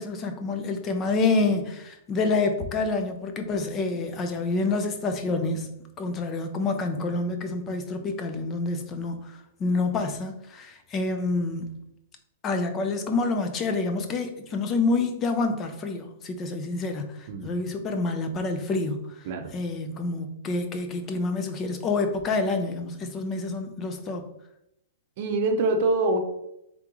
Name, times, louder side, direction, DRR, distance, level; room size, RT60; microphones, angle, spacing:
voice 1, 0.0-11.7 12.4-19.3 19.5-24.2, left 3 dB, 25° left, 7 dB, 0.5 m, -28 dB
voice 2, 25.2-26.2, right 2 dB, 50° right, 6 dB, 0.6 m, -24 dB
3.6 x 3.6 x 3.0 m, 0.80 s
hypercardioid pair, 155°, 0 cm